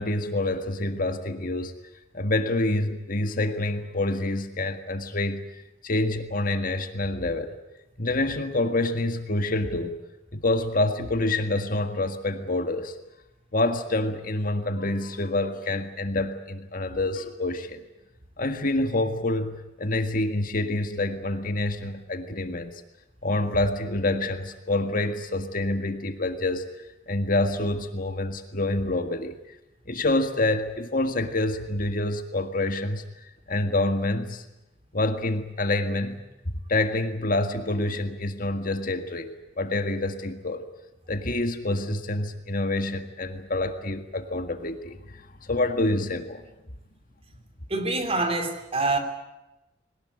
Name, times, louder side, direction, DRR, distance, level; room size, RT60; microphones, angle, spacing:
voice 1, 0.0-1.7 2.1-5.4 5.8-7.6 8.0-10.0 10.3-12.9 13.5-17.8 18.4-22.7 23.2-26.7 27.1-29.4 29.9-34.4 34.9-36.2 36.7-40.6 41.1-46.4, left 2 dB, 50° left, 8 dB, 1.8 m, -27 dB
voice 2, 47.7-49.0, right 2 dB, 35° right, 7 dB, 3.1 m, -25 dB
22.0 x 19.5 x 9.8 m, 0.94 s
head